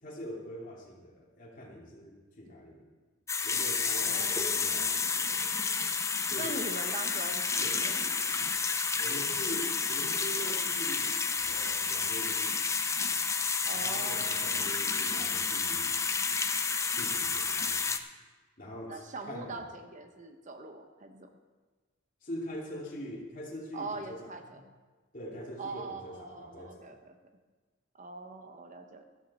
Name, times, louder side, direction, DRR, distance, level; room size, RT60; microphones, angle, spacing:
voice 1, 0.0-2.9 3.4-5.5 6.3-6.6 7.6-7.9 9.0-11.2 11.5-12.6 13.7-15.9 16.9-18.0 18.6-19.0 19.3-19.6 22.2-24.2 25.1-27.0, equal, 40° left, -3 dB, 2.7 m, -43 dB
sound 1, 3.3-18.0, left 5 dB, 15° left, 0.5 m, -30 dB
voice 2, 4.0-4.9 6.4-8.0 13.7-14.5 18.9-21.3 23.7-24.7 25.6-27.2 28.0-29.0, right 3 dB, 40° right, 6 dB, 0.9 m, -42 dB
13.5 x 12.5 x 4.3 m, 1.3 s
head